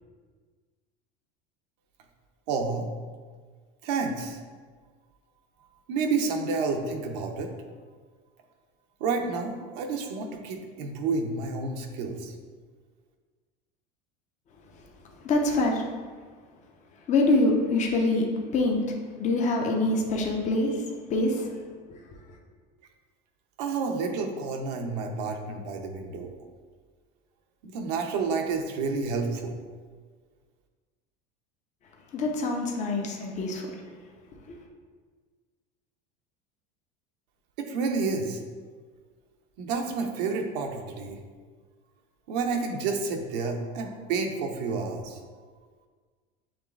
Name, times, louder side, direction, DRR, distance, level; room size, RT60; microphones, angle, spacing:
voice 1, 2.5-2.9 3.8-4.4 5.9-7.5 9.0-12.3 23.6-26.3 27.6-29.6 37.6-38.4 39.6-41.2 42.3-45.2, right 4 dB, 80° right, 3 dB, 0.7 m, -30 dB
voice 2, 15.2-15.8 17.1-18.3 18.5-20.8 21.1-21.5 21.9-22.0 32.1-33.8 34.5-34.6, left 2 dB, 35° left, 1 dB, 0.8 m, -25 dB
7.2 x 3.0 x 2.4 m, 1.5 s
supercardioid pair, 115°, 21 cm